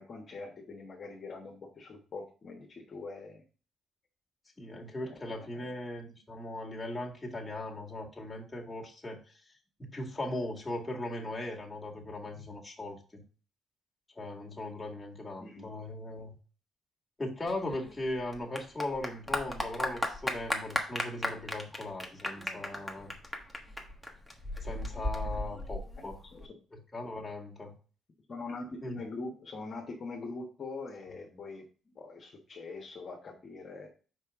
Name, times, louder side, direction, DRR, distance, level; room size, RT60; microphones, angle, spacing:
voice 1, 0.0-3.4 5.1-5.7 15.4-15.7 26.3-26.6 28.3-33.9, left 3 dB, 45° left, 0 dB, 1.2 m, -43 dB
voice 2, 4.6-9.4 9.8-13.2 14.1-16.4 17.2-23.1 24.6-26.2 26.7-27.7 28.8-29.0, left 1 dB, 15° left, -2 dB, 2.1 m, -38 dB
Clapping / Applause, 17.5-26.5, left 1 dB, ahead, 1.2 m, -36 dB
5.4 x 4.8 x 3.6 m, 0.38 s
cardioid pair, 90°, 0 cm